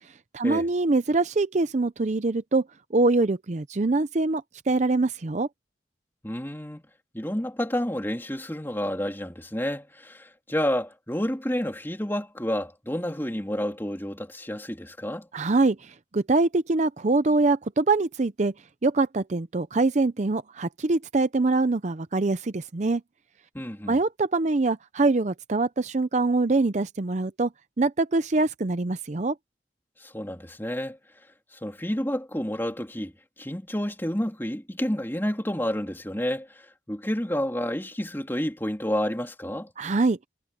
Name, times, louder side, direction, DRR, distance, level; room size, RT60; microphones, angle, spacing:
voice 1, 0.3-2.6 2.9-5.5 15.3-18.5 18.8-23.0 23.9-27.5 27.8-29.3 39.8-40.2, right 3 dB, 40° right, 0.6 m, -24 dB
voice 2, 6.2-6.8 7.1-15.2 23.5-24.0 30.0-31.0 31.6-33.1 33.4-36.5 36.9-39.7, equal, 10° left, 3.4 m, -30 dB
head